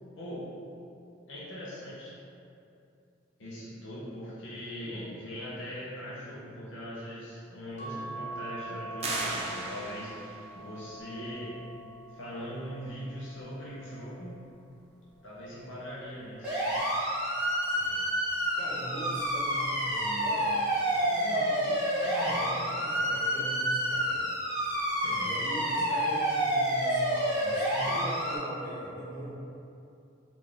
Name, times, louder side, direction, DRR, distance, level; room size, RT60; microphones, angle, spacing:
voice 1, 0.2-0.5 1.3-2.1 3.4-11.6 12.1-14.4 15.2-16.7 25.0-25.3, equal, 75° left, -8 dB, 0.7 m, -41 dB
voice 2, 4.7-5.0 17.6-20.6 20.9-24.2 25.2-29.3, right 1 dB, 20° left, -13 dB, 1.5 m, -41 dB
sound 1, 7.8-14.4 15.0-16.4 17.7-18.1 18.4-18.5, right 2 dB, 40° left, 0.7 m, -45 dB
sound 2, 9.0-10.4, right 2 dB, 35° right, 0.4 m, -35 dB
sound 3, 16.4-28.4, equal, 5° right, 1.1 m, -29 dB
3.9 x 2.4 x 3.3 m, 2.6 s
head